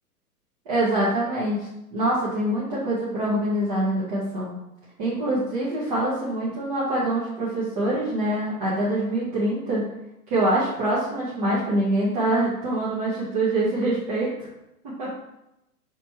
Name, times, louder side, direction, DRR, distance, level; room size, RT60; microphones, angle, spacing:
voice 1, 0.6-4.6 5.0-9.8 10.3-14.5 14.8-15.1, right 1 dB, 25° right, -9 dB, 1.0 m, -25 dB
3.1 x 3.1 x 4.5 m, 0.86 s
figure-of-eight pair, 120°, 46 cm